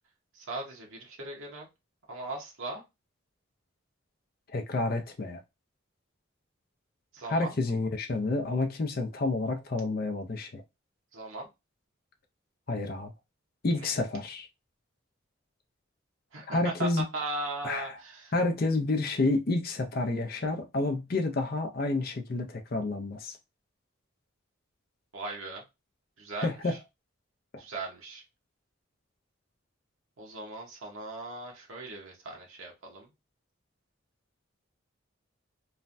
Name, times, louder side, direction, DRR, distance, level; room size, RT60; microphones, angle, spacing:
voice 1, 0.3-1.7 2.1-2.8 7.1-7.5 11.1-11.5 13.8-13.9 16.3-18.3 25.1-25.6 26.2-26.8 27.6-28.2 30.2-33.1, right 2 dB, 85° right, 0.9 m, -38 dB
voice 2, 4.5-5.4 7.3-10.6 12.7-13.1 13.6-14.5 16.5-17.0 17.6-18.0 18.3-23.4 26.4-26.8, left 2 dB, 45° left, 0.5 m, -29 dB
3.2 x 2.2 x 2.5 m
head